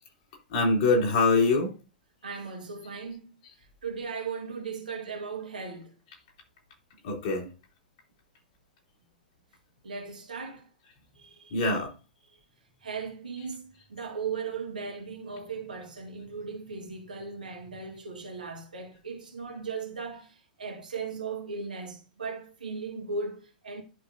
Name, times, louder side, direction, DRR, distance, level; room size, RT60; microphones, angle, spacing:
voice 1, 0.5-1.7 7.0-7.5 11.5-11.9, left 3 dB, 50° left, 3.0 m, -24 dB
voice 2, 2.2-5.9 9.8-10.7 11.2-11.6 12.3-12.4 12.8-23.8, right 5 dB, 70° right, 2.0 m, -37 dB
11.5 x 5.0 x 2.6 m
figure-of-eight pair, 100°, 5 cm